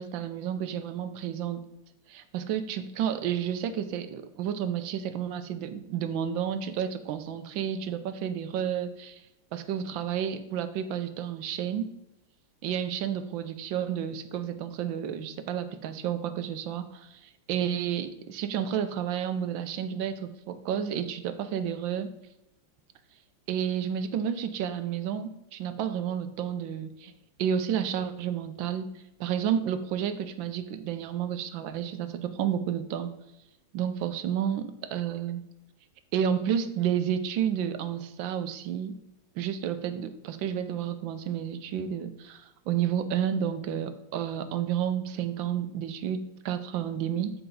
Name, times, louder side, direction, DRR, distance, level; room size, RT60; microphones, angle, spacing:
voice 1, 0.0-1.6 2.1-9.2 9.5-11.9 12.6-22.1 23.5-27.1 27.4-28.9 29.2-33.1 33.7-35.4 36.1-39.0 39.4-47.3, right 9 dB, 80° right, 10 dB, 1.4 m, -31 dB
7.9 x 4.5 x 5.1 m, 0.89 s
omnidirectional pair, 2.1 m